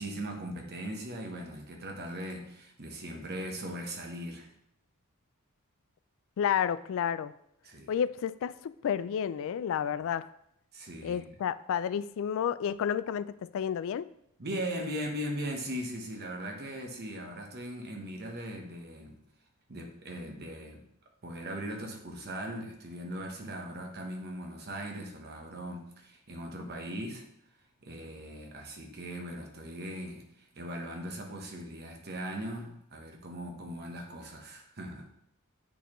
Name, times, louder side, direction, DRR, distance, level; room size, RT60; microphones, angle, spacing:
voice 1, 0.0-4.5 7.6-7.9 10.7-11.2 14.4-19.2 19.7-20.8 21.2-27.3 27.8-35.1, right 1 dB, 50° right, 2 dB, 1.1 m, -39 dB
voice 2, 6.4-7.3 7.9-10.3 11.0-14.1, left 8 dB, 65° left, 16 dB, 0.3 m, -31 dB
9.1 x 4.3 x 3.1 m, 0.76 s
head